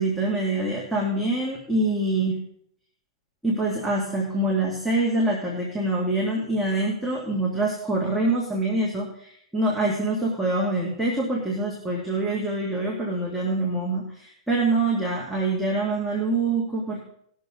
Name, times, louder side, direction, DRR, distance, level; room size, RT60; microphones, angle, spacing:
voice 1, 0.0-2.4 3.4-17.0, right 2 dB, ahead, -5 dB, 2.5 m, -25 dB
19.5 x 6.7 x 3.9 m, 0.67 s
hypercardioid pair, 115°, 3 cm